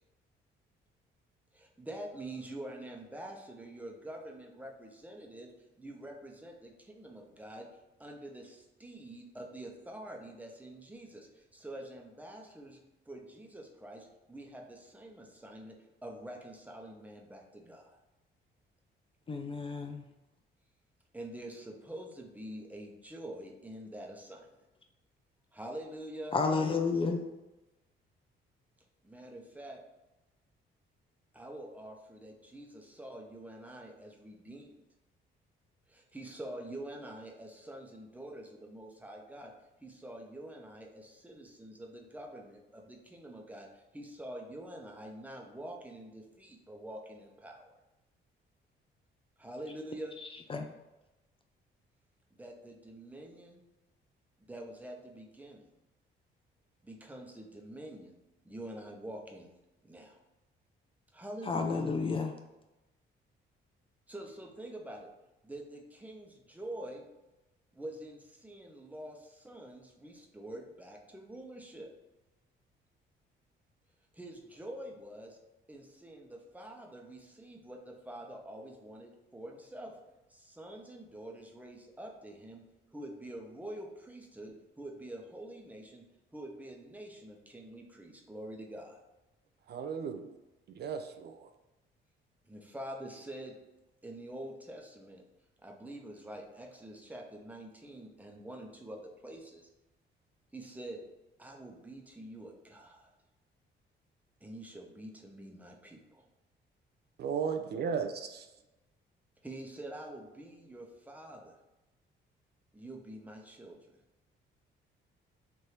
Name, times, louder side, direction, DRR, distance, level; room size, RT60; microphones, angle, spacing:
voice 1, 1.5-5.5 5.8-7.7 8.0-15.8 16.0-18.0 21.1-24.5 25.5-26.4 29.0-29.8 31.3-34.8 35.9-39.5 39.8-47.8 49.4-50.1 52.4-53.6 54.4-55.7 56.8-58.2 58.4-59.5 59.8-60.2 61.1-61.8 64.1-65.1 65.4-67.1 67.7-71.9 74.1-75.4 75.7-79.9 80.3-82.6 82.9-86.0 86.3-89.0 92.5-93.6 94.0-95.2 95.6-99.7 100.5-101.0 101.4-103.1 104.4-106.3 109.4-111.6 112.7-114.0, right 1 dB, 10° right, 0.8 m, -46 dB
voice 2, 19.3-20.1 26.3-27.3 50.3-50.7 61.4-62.4, left 4 dB, 30° left, 0.4 m, -31 dB
voice 3, 89.7-90.3 90.7-91.5 107.2-108.5, right 6 dB, 55° right, 0.4 m, -35 dB
3.3 x 2.6 x 4.4 m
cardioid pair, 90°, 20 cm